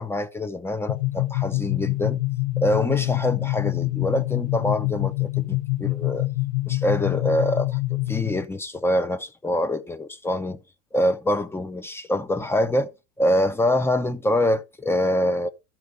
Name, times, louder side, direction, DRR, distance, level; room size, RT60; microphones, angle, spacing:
voice 1, 0.0-2.2 2.6-6.3 6.7-10.6 10.9-12.9 13.2-15.5, left 1 dB, 5° left, 0.5 m, -25 dB
sound 1, 0.9-8.4, left 21 dB, 85° left, 0.8 m, -26 dB
13.5 x 4.4 x 5.1 m
supercardioid pair, 130°, 40 cm